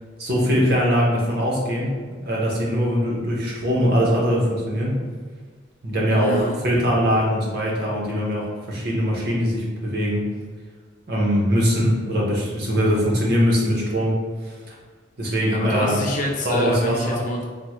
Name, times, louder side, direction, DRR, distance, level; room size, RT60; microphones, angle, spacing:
voice 1, 0.2-5.0 5.8-10.2 11.1-14.2 14.4-14.5 15.2-16.0 16.4-17.2, equal, 55° right, -3 dB, 0.7 m, -22 dB
voice 2, 6.1-6.6 15.2-17.4, equal, 40° left, 0 dB, 0.4 m, -27 dB
3.4 x 2.0 x 3.0 m, 1.5 s
head